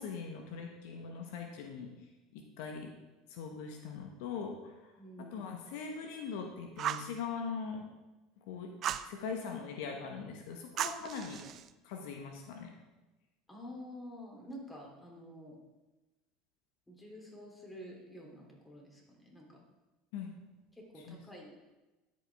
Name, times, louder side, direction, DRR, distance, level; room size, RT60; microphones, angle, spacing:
voice 1, 0.0-1.9 2.3-2.9 3.3-4.7 5.2-7.8 8.5-8.7 9.0-11.4 11.8-12.7 20.1-20.3 21.1-21.2, left 5 dB, 70° left, 3 dB, 0.9 m, -41 dB
voice 2, 5.0-5.4 13.5-15.6 16.9-19.6 20.7-21.5, equal, 10° left, -1 dB, 2.8 m, -49 dB
Fire, 6.8-7.1 8.8-9.1 10.8-11.7, right 10 dB, 50° right, 0.4 m, -36 dB
12.5 x 5.3 x 3.4 m, 1.1 s
hypercardioid pair, 80°, 0 cm